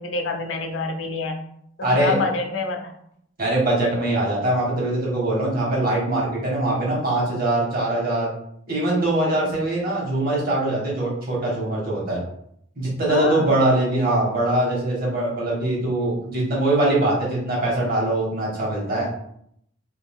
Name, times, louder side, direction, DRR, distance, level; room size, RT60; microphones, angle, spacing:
voice 1, 0.0-1.4 1.8-2.9 13.1-13.6, left 3 dB, 70° left, 4 dB, 0.5 m, -27 dB
voice 2, 1.8-2.2 3.4-8.3 8.7-12.2 12.8-19.1, right 1 dB, 50° right, -4 dB, 1.3 m, -22 dB
2.7 x 2.4 x 3.5 m, 0.70 s
head